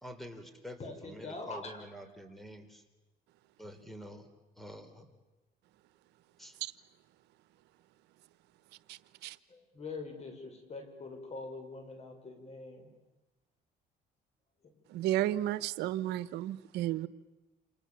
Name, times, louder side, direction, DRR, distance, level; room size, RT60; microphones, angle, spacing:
voice 1, 0.0-2.8 3.6-4.3 4.6-5.1 6.4-6.6, equal, ahead, 8 dB, 3.8 m, -47 dB
voice 2, 0.8-1.8 9.5-12.9, left 3 dB, 40° left, 6 dB, 6.4 m, -44 dB
voice 3, 8.9-9.4 14.9-17.1, right 13 dB, 85° right, 15 dB, 1.0 m, -33 dB
29.0 x 28.0 x 7.2 m, 1.1 s
cardioid pair, 110°, 17 cm